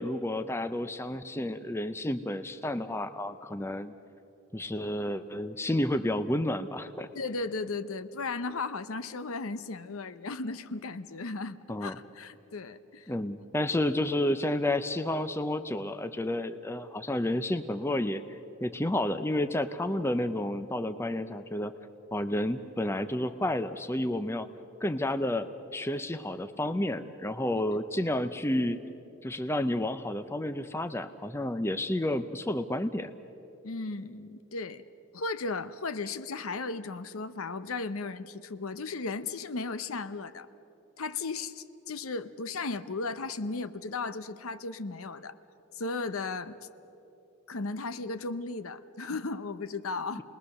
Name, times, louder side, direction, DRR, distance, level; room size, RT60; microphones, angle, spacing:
voice 1, 0.0-3.9 4.5-7.1 11.7-12.0 13.1-21.7 22.1-24.5 24.8-28.8 29.2-33.1, left 1 dB, 10° left, 10 dB, 0.5 m, -31 dB
voice 2, 7.1-13.1 33.6-34.8 35.1-40.5 41.0-45.4 45.7-46.6 47.5-50.2, left 3 dB, 75° left, 12 dB, 0.8 m, -35 dB
29.0 x 20.5 x 6.5 m, 3.0 s
head